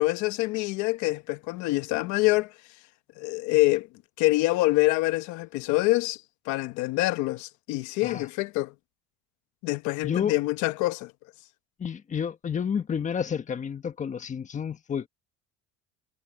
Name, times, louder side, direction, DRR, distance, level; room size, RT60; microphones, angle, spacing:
voice 1, 0.0-2.5 3.2-3.9 4.2-6.2 6.5-8.7 9.6-11.1, left 20 dB, 75° left, 1.1 m, -25 dB
voice 2, 11.8-15.1, left 7 dB, 25° left, 1.3 m, -30 dB
cardioid pair, 130°, 29 cm